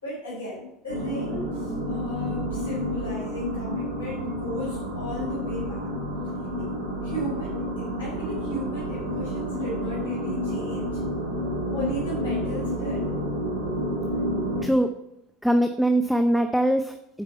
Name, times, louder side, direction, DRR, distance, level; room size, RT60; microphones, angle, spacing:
voice 1, 0.0-5.9 6.6-6.7 7.0-11.0 11.7-13.1, equal, 90° left, -6 dB, 4.0 m, -35 dB
sound 1, 0.9-14.6, equal, 85° right, 2.8 m, -30 dB
voice 2, 15.4-17.2, right 1 dB, ahead, 6 dB, 0.7 m, -22 dB
9.7 x 5.2 x 5.6 m, 0.83 s
hypercardioid pair, 70°, 0 cm